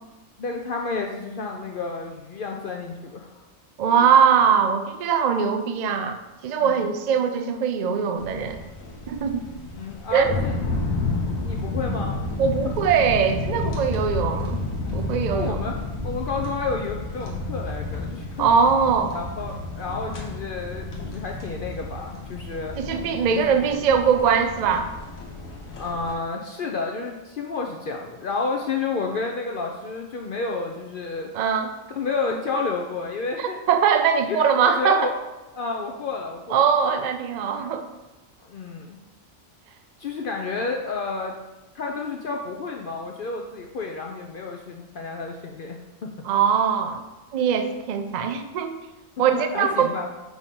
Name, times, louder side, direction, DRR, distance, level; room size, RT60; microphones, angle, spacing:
voice 1, 0.4-3.4 3.9-4.1 6.6-6.8 9.7-10.5 11.4-12.2 15.3-15.8 16.0-18.5 19.1-22.8 23.3-23.5 25.8-31.3 31.9-33.6 34.3-35.2 35.6-36.7 38.4-39.0 40.0-41.3 41.7-46.1 49.3-50.1, left 4 dB, 60° left, 1 dB, 0.5 m, -30 dB
voice 2, 3.8-6.2 6.4-8.6 9.1-9.5 10.1-10.4 12.4-14.6 14.9-15.6 18.4-19.2 22.8-24.9 31.3-31.7 33.4-35.0 36.5-37.8 46.2-47.0 47.3-48.7 49.2-49.9, right 7 dB, 70° right, 6 dB, 0.4 m, -21 dB
sound 1, 8.2-26.1, left 2 dB, 85° left, 1.5 m, -31 dB
4.7 x 4.2 x 5.2 m, 1.1 s
omnidirectional pair, 1.4 m